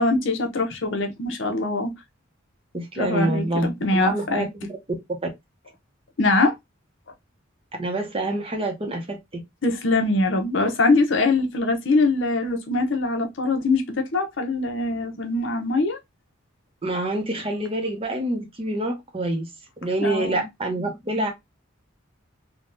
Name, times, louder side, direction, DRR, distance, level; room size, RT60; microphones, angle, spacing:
voice 1, 0.0-1.9 3.0-4.5 6.2-6.5 9.6-16.0 20.0-20.4, left 2 dB, 60° left, 0.7 m, -23 dB
voice 2, 2.7-4.7 7.8-9.4 16.8-19.5 19.8-21.3, right 1 dB, 25° right, 0.7 m, -26 dB
3.5 x 2.2 x 2.5 m
head